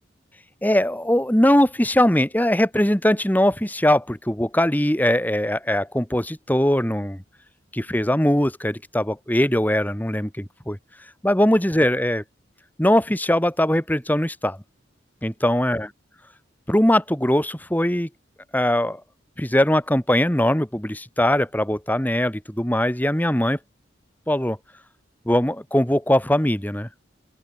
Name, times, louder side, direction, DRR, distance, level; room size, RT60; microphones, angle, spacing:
voice 1, 0.6-7.2 7.7-10.8 11.2-12.2 12.8-14.6 15.2-15.9 16.7-18.1 18.5-19.0 19.4-23.6 24.3-24.6 25.3-26.9, left 1 dB, 10° left, 1.9 m, -21 dB
open air
head